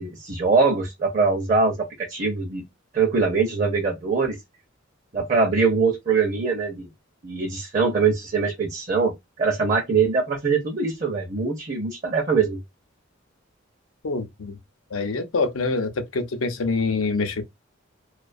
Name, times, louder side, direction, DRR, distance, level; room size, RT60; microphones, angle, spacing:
voice 1, 0.0-1.7 2.1-2.6 2.9-4.4 5.1-6.9 7.2-9.1 9.4-12.6, right 4 dB, 40° right, 0.5 m, -22 dB
voice 2, 14.0-14.6 14.9-17.4, left 3 dB, 80° left, 0.6 m, -25 dB
2.3 x 2.3 x 2.4 m
head